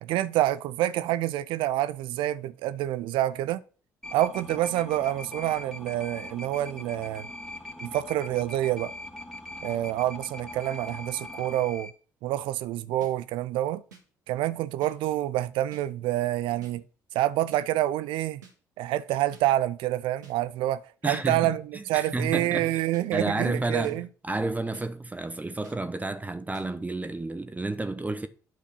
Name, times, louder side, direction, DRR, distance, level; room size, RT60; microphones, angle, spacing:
voice 1, 0.0-3.6 4.1-7.3 7.8-8.9 9.6-11.9 12.2-13.8 14.3-16.8 17.1-18.4 18.8-24.1, right 14 dB, 65° right, 0.5 m, -27 dB
sound 1, 4.0-11.9, left 1 dB, 5° left, 2.2 m, -41 dB
sound 2, 13.0-13.1 13.9-14.0 14.8-14.9 15.7-15.8 16.6-16.7 17.5-17.6 18.4-18.5 19.3-19.4 20.2-20.3 21.1-21.2 22.0-22.1 22.9-23.0 23.8-24.0 24.7-24.9 25.6-25.8 26.5-26.7, right 5 dB, 85° right, 1.7 m, -50 dB
voice 2, 21.0-22.8 23.1-28.3, right 2 dB, 15° right, 0.9 m, -31 dB
9.2 x 4.9 x 6.4 m
figure-of-eight pair, 50°, 9 cm